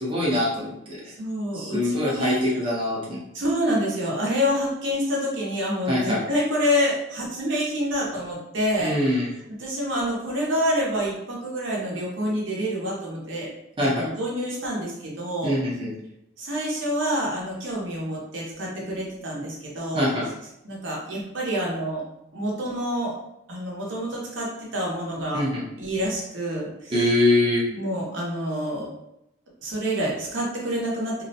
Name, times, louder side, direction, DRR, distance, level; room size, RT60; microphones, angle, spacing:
voice 1, 0.0-1.0 1.5-3.2 5.9-6.2 8.8-9.3 13.8-14.1 15.4-15.9 19.9-20.3 25.3-25.6 26.9-27.6, left 1 dB, 30° right, -5 dB, 0.6 m, -23 dB
voice 2, 1.1-2.4 3.3-9.0 9.6-13.5 13.8-15.5 16.4-20.1 20.6-22.0 22.3-23.2 23.5-25.4 25.8-26.9 27.7-28.9 29.6-31.2, equal, 85° right, -3 dB, 0.7 m, -27 dB
2.4 x 2.1 x 2.7 m, 0.82 s
head